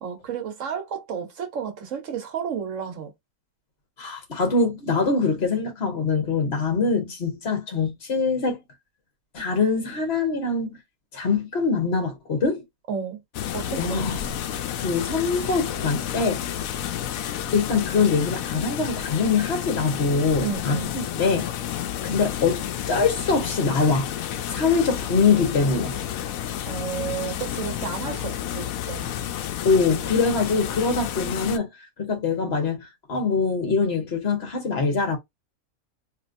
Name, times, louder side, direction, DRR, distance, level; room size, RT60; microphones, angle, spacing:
voice 1, 0.0-3.1 12.9-13.2 13.5-14.0 20.4-20.9 26.7-29.1, right 7 dB, 65° right, 1.3 m, -32 dB
voice 2, 4.0-8.6 9.3-10.8 11.1-12.6 13.8-14.2 14.8-16.5 17.5-21.7 22.0-24.1 24.5-26.0 29.6-31.7 32.0-35.2, left 4 dB, 45° left, 1.5 m, -23 dB
sound 1, 13.3-31.6, left 10 dB, 75° left, 1.0 m, -31 dB
3.3 x 2.9 x 2.5 m
omnidirectional pair, 1.5 m